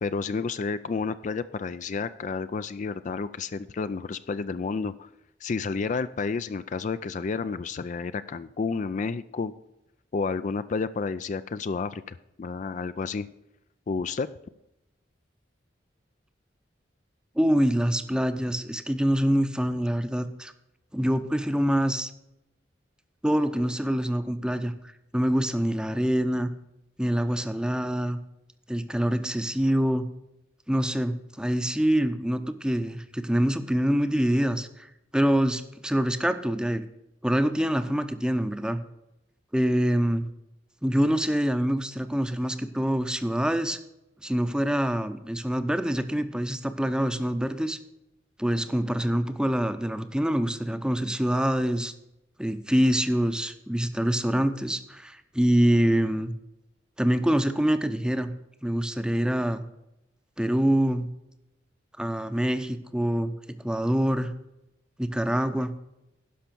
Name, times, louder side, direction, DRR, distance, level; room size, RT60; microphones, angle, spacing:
voice 1, 0.0-5.1 5.4-9.5 10.1-13.3 13.9-14.3, left 4 dB, 45° left, 13 dB, 0.4 m, -30 dB
voice 2, 17.4-20.5 20.9-22.1 23.2-24.7 25.1-26.5 27.0-28.2 28.7-30.1 30.7-34.9 35.1-36.8 37.2-38.8 39.5-40.2 40.8-43.8 44.2-47.8 48.4-51.9 52.4-56.3 57.0-58.3 58.6-59.6 60.4-61.1 62.0-63.3 63.6-64.3 65.0-65.7, equal, 5° right, 10 dB, 0.7 m, -25 dB
12.0 x 5.6 x 6.9 m, 0.89 s
head